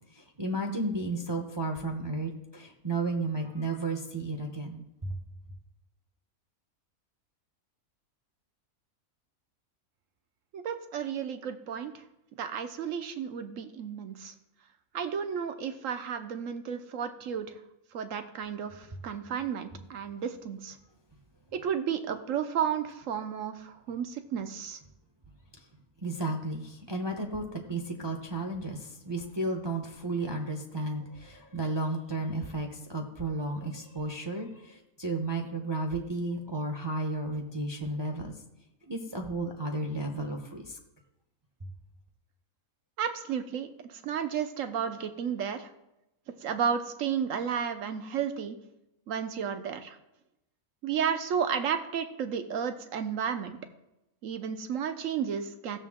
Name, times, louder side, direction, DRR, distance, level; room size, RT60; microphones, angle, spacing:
voice 1, 0.4-5.1 26.0-38.3 38.9-40.6, right 2 dB, 20° right, 2 dB, 0.8 m, -33 dB
voice 2, 10.5-11.9 12.4-14.3 14.9-17.5 17.9-20.8 21.6-24.8 43.0-43.7 44.0-45.7 46.4-48.6 49.1-50.0 50.8-53.6 54.2-55.8, right 7 dB, 65° right, 9 dB, 1.2 m, -32 dB
15.5 x 6.8 x 3.7 m, 0.90 s
omnidirectional pair, 1.5 m